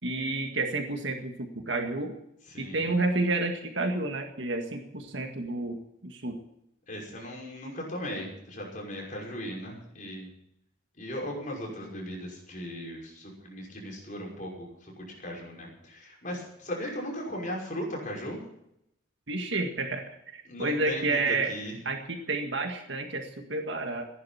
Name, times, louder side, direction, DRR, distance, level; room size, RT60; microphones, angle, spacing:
voice 1, 0.0-2.2 2.6-6.4 19.3-21.5 21.9-24.1, right 2 dB, 65° right, 4 dB, 1.9 m, -30 dB
voice 2, 2.5-2.9 6.9-10.3 11.0-18.4 20.5-21.7, equal, 40° left, -1 dB, 5.9 m, -37 dB
16.0 x 11.0 x 7.2 m, 0.77 s
head